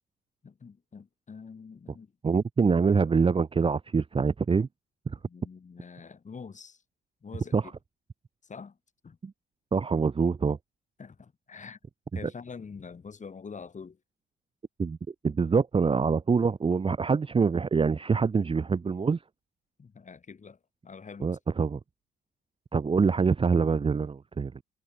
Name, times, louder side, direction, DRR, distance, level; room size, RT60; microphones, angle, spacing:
voice 1, 0.4-2.4 5.3-6.8 7.2-7.7 8.4-8.8 9.0-9.2 11.0-11.8 12.1-14.0 19.8-20.6 20.8-21.4, left 5 dB, 40° left, 7.3 m, -45 dB
voice 2, 2.2-4.7 5.1-5.2 7.5-7.6 9.2-9.3 9.7-10.6 14.8-15.0 15.2-19.2 21.2-21.8 22.7-24.5, right 5 dB, 25° right, 0.8 m, -25 dB
cardioid pair, 90°, 20 cm